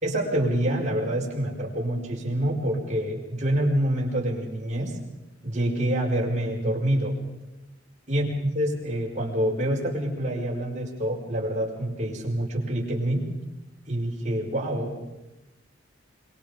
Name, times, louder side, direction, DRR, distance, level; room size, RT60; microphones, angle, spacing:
voice 1, 0.0-5.0 5.4-7.2 8.1-13.3 13.9-15.0, right 1 dB, 40° right, -2 dB, 5.7 m, -26 dB
27.5 x 23.5 x 5.4 m, 1.0 s
head